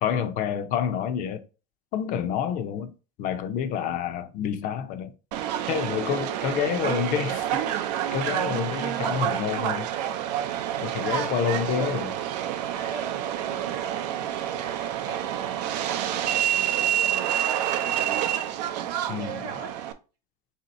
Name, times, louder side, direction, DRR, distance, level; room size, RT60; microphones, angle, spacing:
voice 1, 0.0-1.4 1.9-2.9 3.2-5.1 5.7-7.6 8.1-9.9 10.8-12.1 19.1-19.5, left 8 dB, 40° left, 0.5 m, -28 dB
Subway metro underground, 5.3-19.9, right 11 dB, 85° right, 0.5 m, -28 dB
voice 2, 5.9-7.0 11.0-12.0 12.7-18.5 18.9-19.8, right 5 dB, 40° right, 0.9 m, -40 dB
3.6 x 2.8 x 4.1 m
supercardioid pair, 150°, 21 cm